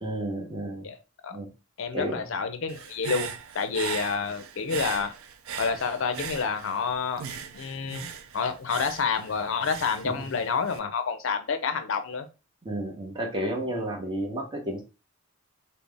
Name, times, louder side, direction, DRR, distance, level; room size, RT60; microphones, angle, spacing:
voice 1, 0.0-0.9 1.3-1.5 1.9-2.3 10.0-10.1 12.6-14.8, right 1 dB, 20° right, 0.8 m, -31 dB
voice 2, 1.8-5.1 5.6-7.2 7.5-8.1 8.3-12.3, left 5 dB, 65° left, 0.4 m, -29 dB
Human voice / Breathing, 2.7-6.9 7.2-10.8, right 7 dB, 75° right, 0.4 m, -39 dB
4.0 x 2.0 x 3.3 m
head